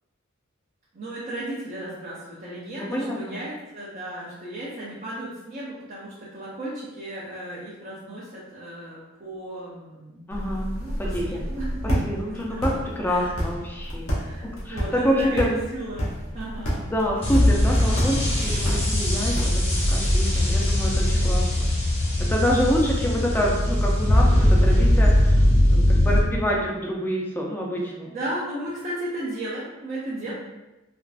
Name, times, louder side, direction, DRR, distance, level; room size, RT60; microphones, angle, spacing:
voice 1, 0.9-10.3 10.8-12.6 13.0-13.4 14.2-16.9 27.8-30.3, right 1 dB, 35° right, -8 dB, 0.6 m, -35 dB
voice 2, 2.8-3.1 10.3-10.7 11.0-11.4 12.0-12.7 13.0-14.2 14.7-15.5 16.9-19.6 19.9-21.7 22.2-25.4 25.7-28.1, equal, 10° left, -2 dB, 0.4 m, -27 dB
sound 1, 10.3-19.9, equal, 80° left, 0.9 m, -31 dB
sound 2, 17.2-26.2, left 1 dB, 30° left, 0.8 m, -20 dB
3.3 x 2.4 x 2.4 m, 1.0 s
head